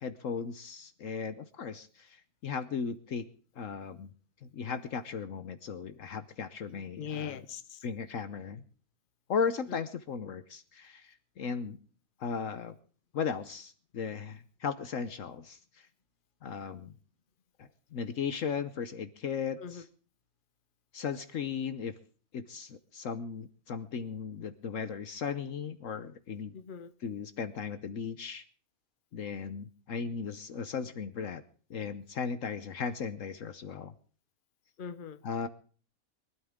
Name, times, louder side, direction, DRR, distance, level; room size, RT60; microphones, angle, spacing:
voice 1, 0.0-3.3 3.6-4.1 4.4-7.5 7.8-8.6 9.3-11.8 12.2-12.7 13.1-15.9 16.4-16.9 17.6-19.9 20.9-21.9 22.3-26.5 27.0-28.4 29.1-31.4 31.7-33.9 35.2-35.5, left 6 dB, 65° left, 12 dB, 1.2 m, -36 dB
voice 2, 6.7-7.8 9.7-9.8 19.6-19.8 26.5-26.9 34.8-35.2, left 7 dB, 40° left, 10 dB, 1.1 m, -41 dB
23.0 x 12.5 x 3.6 m, 0.43 s
omnidirectional pair, 1.5 m